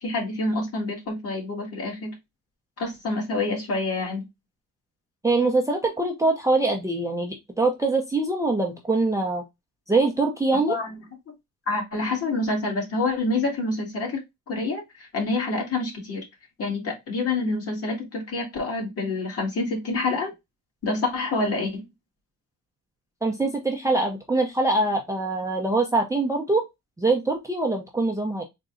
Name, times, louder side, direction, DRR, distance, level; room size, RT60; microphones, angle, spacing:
voice 1, 0.0-2.2 2.8-4.2 10.7-10.9 11.7-14.2 14.5-16.2 16.6-20.3 20.8-21.8, left 3 dB, 45° left, 0 dB, 1.8 m, -27 dB
voice 2, 5.2-9.4 9.9-10.8 23.2-26.6 27.0-28.4, right 2 dB, 10° right, 1 dB, 0.6 m, -23 dB
3.9 x 2.2 x 3.7 m, 0.20 s
cardioid pair, 135°, 32 cm